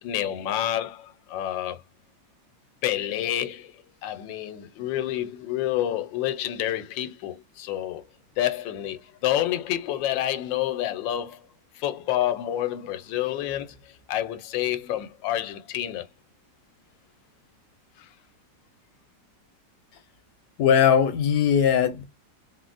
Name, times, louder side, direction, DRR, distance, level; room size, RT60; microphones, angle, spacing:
voice 1, 0.0-1.8 2.8-8.0 8.4-11.4 11.7-16.1 18.0-18.1, left 12 dB, 85° left, 1.3 m, -28 dB
voice 2, 20.6-22.0, left 8 dB, 70° left, 1.0 m, -20 dB
3.7 x 2.1 x 2.5 m
omnidirectional pair, 2.0 m